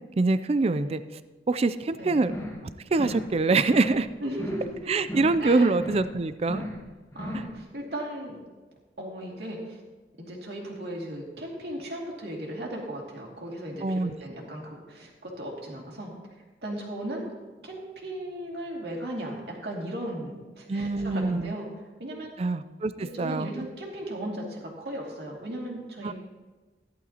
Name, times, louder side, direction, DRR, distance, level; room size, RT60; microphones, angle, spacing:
voice 1, 0.2-1.2 1.5-2.3 2.9-4.1 4.9-6.6 7.3-7.4 13.8-14.1 20.7-21.5 22.4-23.5 26.0-26.1, right 3 dB, 35° right, 14 dB, 0.4 m, -25 dB
sound 1, 2.2-2.7 2.9-3.3 3.6-4.1 4.3-4.8 5.0-5.5 5.7-6.1 6.4-6.9 7.1-7.5, left 1 dB, 15° left, 1.2 m, -36 dB
voice 2, 4.2-5.1 5.4-5.7 7.1-8.4 9.0-9.8 10.2-16.1 16.6-17.3 17.6-21.7 22.0-22.3 23.0-26.1, right 1 dB, 65° right, -2 dB, 2.5 m, -36 dB
14.5 x 11.0 x 2.9 m, 1.3 s
head